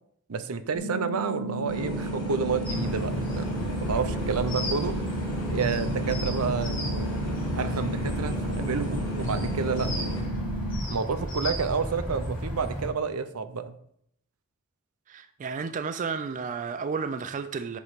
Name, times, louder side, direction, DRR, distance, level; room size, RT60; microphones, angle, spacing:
voice 1, 0.3-5.0 5.5-7.2 7.5-10.1 10.9-13.8, right 5 dB, 85° right, 0.6 m, -30 dB
sound 1, 0.7-10.7, right 1 dB, 60° left, 2.1 m, -34 dB
sound 2, 1.7-10.2, equal, 20° left, 2.8 m, -36 dB
sound 3, 2.6-12.9, equal, 40° left, 2.7 m, -33 dB
voice 2, 15.1-17.8, right 5 dB, 35° right, 0.3 m, -32 dB
7.9 x 3.1 x 5.7 m
head